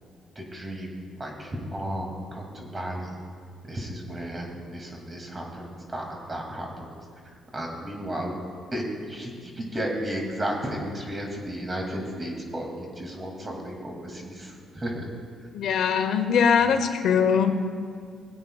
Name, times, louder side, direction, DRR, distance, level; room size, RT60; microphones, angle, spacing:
voice 1, 0.4-3.2 3.6-6.9 7.5-8.3 8.7-15.1, equal, 25° right, 1 dB, 2.3 m, -34 dB
voice 2, 15.5-17.5, left 7 dB, 75° left, 7 dB, 0.7 m, -21 dB
20.0 x 8.9 x 2.3 m, 2.1 s
cardioid pair, 90°, 0 cm